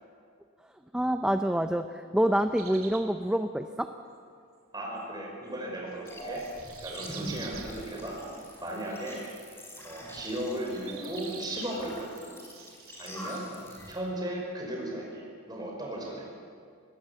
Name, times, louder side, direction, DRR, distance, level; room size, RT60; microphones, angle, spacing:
voice 1, 0.9-3.9, equal, 5° right, 7 dB, 0.5 m, -27 dB
sound 1, 2.6-3.1 5.9-7.7 8.7-9.0 9.5-9.8 10.5-11.7 12.2-13.2, right 8 dB, 90° right, 2.6 m, -46 dB
voice 2, 4.7-6.5 6.8-8.2 8.6-9.2 9.8-12.4 13.0-13.5 13.9-16.3, right 1 dB, 20° right, -1 dB, 5.6 m, -36 dB
sound 2, 6.1-13.9, equal, 10° left, 4.4 m, -44 dB
22.0 x 19.0 x 7.2 m, 2.2 s
head